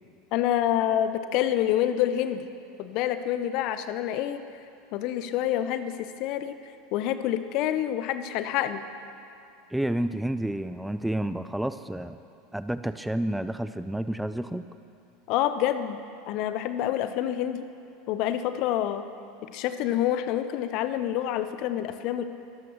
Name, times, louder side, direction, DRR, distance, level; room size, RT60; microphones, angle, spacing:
voice 1, 0.3-2.5 2.8-4.4 4.9-6.6 6.9-8.8 15.3-16.0 16.3-17.7 18.1-19.0 19.4-22.2, left 11 dB, 50° left, 11 dB, 0.7 m, -27 dB
voice 2, 9.7-12.2 12.5-14.7, right 1 dB, 5° right, 12 dB, 0.4 m, -30 dB
23.5 x 14.0 x 3.1 m, 2.5 s
figure-of-eight pair, 75°, 0 cm